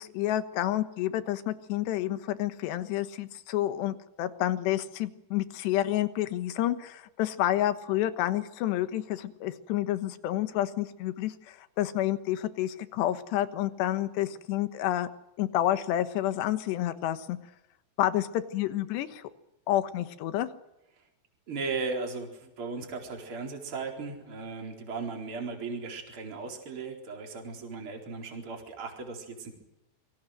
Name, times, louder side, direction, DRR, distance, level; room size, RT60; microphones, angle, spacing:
voice 1, 0.0-15.1 15.4-17.4 18.0-19.2 19.7-20.5, left 13 dB, 90° left, 11 dB, 3.4 m, -29 dB
voice 2, 21.5-29.5, right 4 dB, 30° right, 2 dB, 4.7 m, -37 dB
28.0 x 23.5 x 6.6 m, 0.90 s
omnidirectional pair, 4.9 m